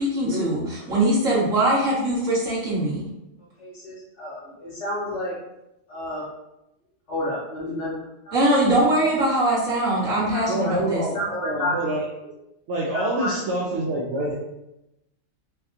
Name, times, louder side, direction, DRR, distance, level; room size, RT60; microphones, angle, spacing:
voice 1, 0.0-3.1 8.3-11.0, right 1 dB, 90° right, -10 dB, 2.2 m, -22 dB
voice 2, 3.6-5.3 5.9-6.2 7.1-8.3 10.3-10.7 11.1-11.7 12.9-13.3, left 1 dB, 65° left, -8 dB, 1.9 m, -31 dB
voice 3, 10.5-12.3 12.7-14.3, right 1 dB, 70° right, -4 dB, 1.0 m, -26 dB
5.4 x 2.3 x 2.8 m, 0.89 s
omnidirectional pair, 1.3 m